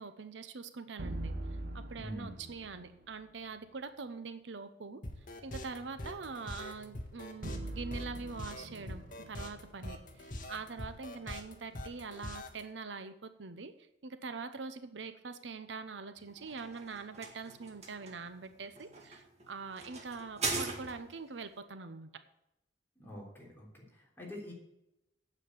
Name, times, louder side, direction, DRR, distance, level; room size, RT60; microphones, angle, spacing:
voice 1, 0.0-1.4 1.7-5.0 5.4-13.7 14.0-22.2, right 4 dB, 80° right, 10 dB, 0.8 m, -44 dB
sound 1, 1.0-3.2 7.4-10.7, right 1 dB, 60° right, 1.0 m, -43 dB
voice 2, 1.9-2.3 23.0-24.5, equal, 15° left, -3 dB, 3.3 m, -45 dB
sound 2, 5.0-12.6, left 1 dB, 50° left, 1.5 m, -43 dB
sound 3, 16.2-21.3, right 3 dB, 40° right, 2.0 m, -41 dB
9.2 x 7.5 x 8.4 m, 0.87 s
head